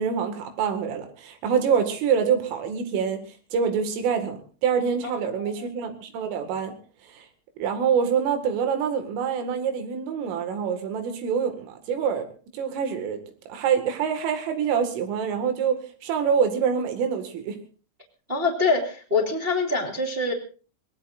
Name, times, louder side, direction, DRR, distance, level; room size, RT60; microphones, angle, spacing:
voice 1, 0.0-3.2 3.5-6.8 7.1-7.3 7.6-12.3 12.5-13.2 13.5-17.6, right 7 dB, 80° right, 6 dB, 4.5 m, -25 dB
voice 2, 18.3-20.3, left 3 dB, 20° right, -2 dB, 1.8 m, -24 dB
24.5 x 19.0 x 2.6 m, 0.39 s
omnidirectional pair, 5.7 m